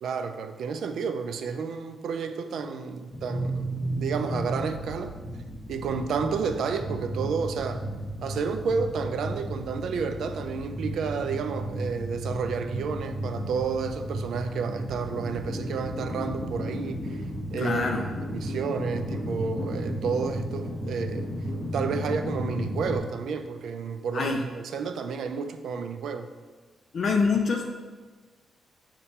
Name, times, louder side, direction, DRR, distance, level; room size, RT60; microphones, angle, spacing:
voice 1, 0.0-3.7 4.0-5.1 5.7-7.9 8.2-17.3 17.5-21.3 21.7-26.3, right 5 dB, 75° right, 8 dB, 0.3 m, -31 dB
sound 1, 3.1-23.0, equal, 25° left, 0.9 m, -34 dB
voice 2, 17.6-18.1 24.1-24.4 26.9-27.7, left 4 dB, 60° left, 2 dB, 0.4 m, -25 dB
5.6 x 2.2 x 4.1 m, 1.4 s
cardioid pair, 75°, 0 cm